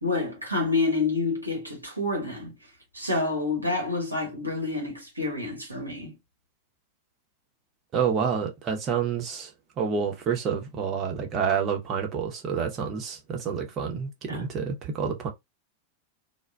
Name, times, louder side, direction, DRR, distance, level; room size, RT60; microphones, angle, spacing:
voice 1, 0.0-2.5 2.9-6.2 14.3-14.4, left 3 dB, 90° right, 0.9 m, -28 dB
voice 2, 7.9-9.5 9.8-15.3, right 6 dB, 30° right, 0.9 m, -28 dB
2.3 x 2.1 x 3.3 m
figure-of-eight pair, 90°, 0 cm